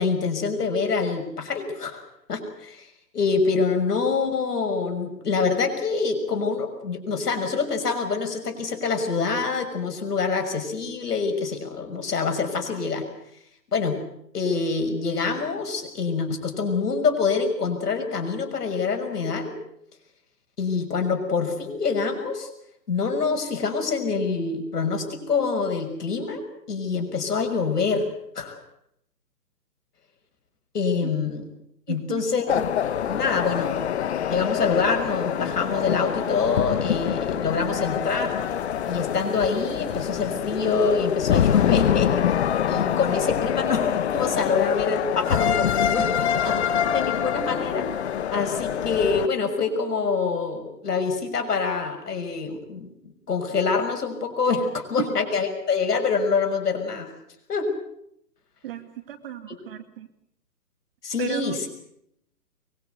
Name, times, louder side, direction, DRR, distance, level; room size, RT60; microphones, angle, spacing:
voice 1, 0.0-2.0 2.3-2.9 3.1-13.0 13.7-14.0 14.3-19.5 20.6-22.5 22.9-26.4 26.7-28.1 28.3-28.6 30.7-31.4 31.9-32.5 33.1-33.9 34.2-38.3 38.9-42.2 42.6-46.1 46.4-48.0 48.3-52.9 53.3-57.1 57.5-57.7 59.5-59.6 61.0-61.6, left 5 dB, 70° left, 6 dB, 6.4 m, -25 dB
voice 2, 31.9-32.2 55.0-55.1 58.6-60.1 61.2-61.6, right 12 dB, 35° right, 8 dB, 2.2 m, -34 dB
sound 1, 32.5-49.3, left 9 dB, 45° left, 1.1 m, -25 dB
23.5 x 22.5 x 8.0 m, 0.75 s
hypercardioid pair, 155°, 48 cm